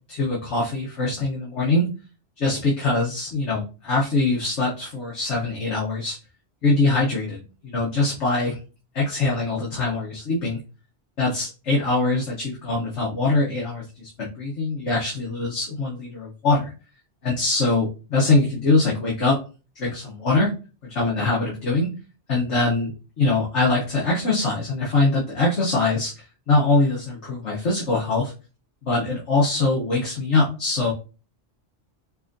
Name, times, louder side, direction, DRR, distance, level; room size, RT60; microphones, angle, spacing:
voice 1, 0.1-1.9 2.4-6.2 6.6-8.6 8.9-10.6 11.2-16.7 17.2-19.4 19.7-20.5 20.8-21.9 22.3-26.1 26.5-28.3 28.9-30.9, left 3 dB, 75° left, -5 dB, 1.3 m, -23 dB
5.4 x 2.5 x 2.6 m, 0.33 s
omnidirectional pair, 1.2 m